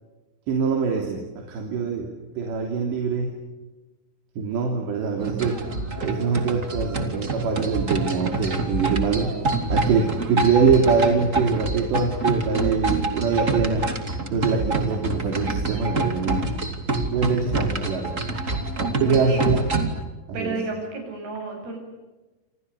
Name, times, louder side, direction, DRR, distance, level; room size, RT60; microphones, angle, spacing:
voice 1, 0.5-2.1 2.4-3.3 4.4-5.6 6.0-9.3 9.7-13.9 14.3-16.5 17.1-18.1 18.9-19.6 20.3-20.6, right 5 dB, 80° right, 1 dB, 5.5 m, -23 dB
sound 1, 5.2-20.0, right 2 dB, 25° right, 2.3 m, -26 dB
voice 2, 18.7-19.4 20.3-21.8, right 3 dB, 65° right, 3 dB, 9.8 m, -32 dB
29.0 x 28.0 x 7.1 m, 1.2 s
omnidirectional pair, 4.9 m